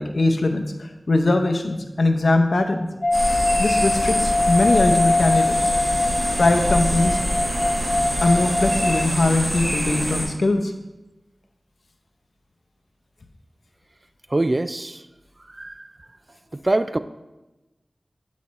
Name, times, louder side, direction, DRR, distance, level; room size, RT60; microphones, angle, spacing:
voice 1, 0.0-2.9 3.6-5.6 6.4-7.2 8.2-10.7, left 2 dB, 80° left, 5 dB, 0.7 m, -21 dB
sound 1, 3.0-9.1, left 2 dB, 40° left, 0.7 m, -22 dB
sound 2, 3.1-10.2, equal, 85° right, 2.1 m, -25 dB
voice 2, 14.3-15.1 15.4-16.0 16.5-17.0, right 2 dB, 40° right, 12 dB, 0.3 m, -24 dB
9.7 x 4.2 x 4.1 m, 1.1 s
wide cardioid pair, 50°, 0 cm